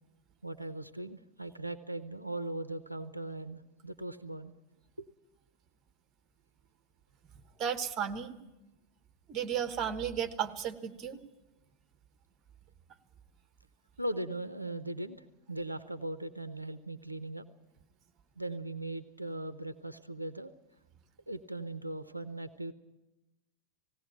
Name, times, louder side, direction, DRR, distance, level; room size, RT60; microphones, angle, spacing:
voice 1, 0.4-4.5 5.0-5.1 14.0-17.4 18.4-20.5 21.3-22.7, right 1 dB, 85° right, 12 dB, 0.7 m, -39 dB
voice 2, 7.6-8.4 9.3-11.2, right 8 dB, 30° right, 9 dB, 1.3 m, -34 dB
19.0 x 17.0 x 8.7 m, 0.97 s
figure-of-eight pair, 90°, 0 cm